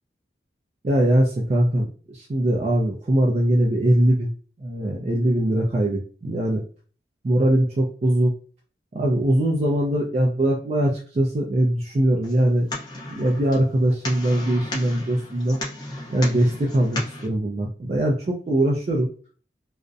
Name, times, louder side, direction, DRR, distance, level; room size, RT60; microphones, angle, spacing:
voice 1, 0.8-4.3 4.6-6.6 7.2-8.3 8.9-12.7 13.1-15.6 16.1-19.1, right 1 dB, 40° right, -2 dB, 0.3 m, -21 dB
sound 1, 12.2-17.3, left 1 dB, 25° left, 0.5 m, -34 dB
2.5 x 2.0 x 2.4 m, 0.40 s
head